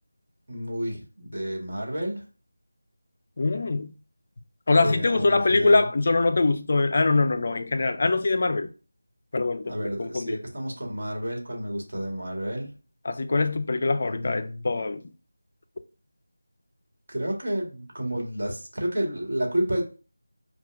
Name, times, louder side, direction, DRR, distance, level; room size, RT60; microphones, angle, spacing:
voice 1, 0.5-2.2 4.8-5.8 9.6-12.7 14.0-14.6 17.1-19.8, equal, 55° right, 1.6 m, -30 dB
voice 2, 3.4-3.9 4.7-8.7 9.3-10.4 13.0-15.0, left 3 dB, 40° left, 0.4 m, -23 dB
5.5 x 2.3 x 2.5 m
figure-of-eight pair, 170°, 0 cm